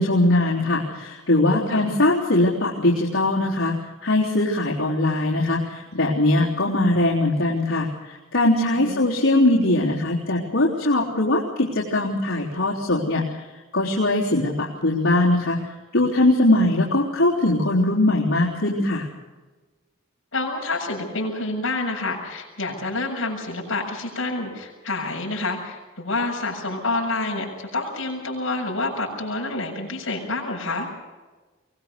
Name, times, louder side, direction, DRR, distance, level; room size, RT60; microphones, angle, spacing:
voice 1, 0.0-3.7 4.0-5.6 5.9-7.9 8.3-13.2 13.7-15.6 15.9-19.0, left 1 dB, 90° left, -6 dB, 3.8 m, -21 dB
voice 2, 20.3-30.9, left 2 dB, 70° left, 0 dB, 7.2 m, -28 dB
23.5 x 19.5 x 6.8 m, 1.2 s
head